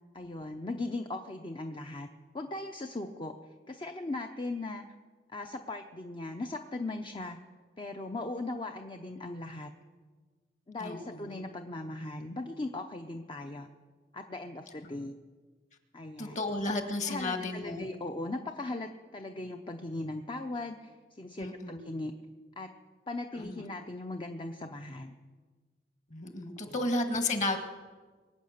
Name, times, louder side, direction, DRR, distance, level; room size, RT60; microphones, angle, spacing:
voice 1, 0.1-2.1 2.3-4.8 5.3-7.4 7.8-9.7 10.7-13.7 14.1-15.2 15.9-16.4 17.0-22.1 22.6-22.7 23.1-25.1 26.6-26.7, left 2 dB, 25° left, 5 dB, 0.7 m, -38 dB
voice 2, 10.8-11.4 16.2-17.8 21.4-21.8 23.3-23.6 26.1-27.6, left 2 dB, 40° left, 6 dB, 1.7 m, -33 dB
23.5 x 8.4 x 6.6 m, 1.4 s
head